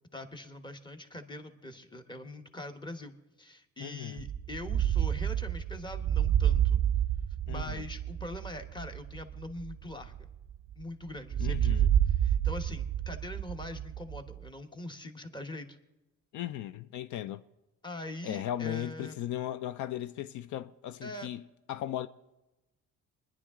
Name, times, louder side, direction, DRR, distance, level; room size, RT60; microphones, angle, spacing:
voice 1, 0.1-6.8 7.5-10.1 10.8-15.8 17.8-19.2 21.0-21.3, left 1 dB, 15° left, 1.1 m, -43 dB
voice 2, 3.8-4.2 7.5-7.8 11.4-11.9 16.3-17.4 18.2-22.1, left 12 dB, 75° left, 0.5 m, -37 dB
sound 1, 4.2-10.8 11.3-14.5, right 10 dB, 40° right, 0.5 m, -29 dB
25.0 x 10.5 x 3.7 m
cardioid pair, 110°, 30 cm